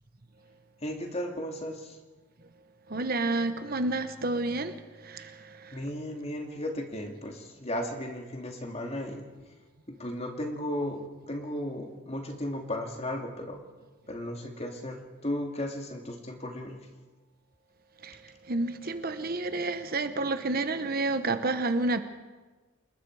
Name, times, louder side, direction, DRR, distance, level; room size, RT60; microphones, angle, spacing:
voice 1, 0.8-2.0 5.7-9.3 9.9-13.6 14.1-16.9, left 1 dB, 30° left, 2.6 m, -35 dB
voice 2, 2.9-4.7 5.0-5.8 18.0-18.2 18.5-22.0, right 2 dB, 45° right, 1.1 m, -30 dB
28.0 x 20.0 x 4.9 m
head